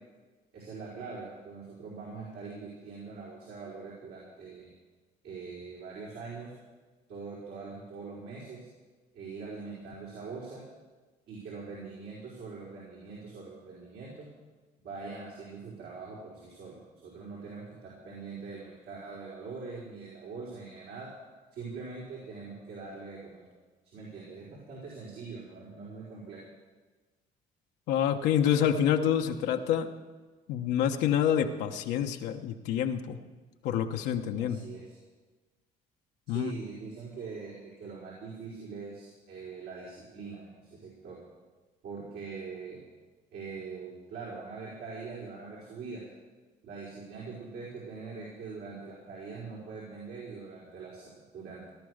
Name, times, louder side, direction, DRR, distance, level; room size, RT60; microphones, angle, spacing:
voice 1, 0.5-4.7 5.2-6.5 7.1-8.7 9.1-10.6 11.3-14.3 14.8-21.1 21.5-23.5 23.8-26.4 34.4-35.0 36.3-41.2 41.8-42.8 43.3-46.0 46.6-51.7, right 4 dB, 75° right, -6 dB, 4.9 m, -43 dB
voice 2, 27.9-29.9 30.5-33.2 33.6-34.6 36.3-36.5, left 9 dB, 90° left, 4 dB, 1.1 m, -27 dB
18.0 x 11.5 x 6.6 m, 1.3 s
cardioid pair, 110°, 17 cm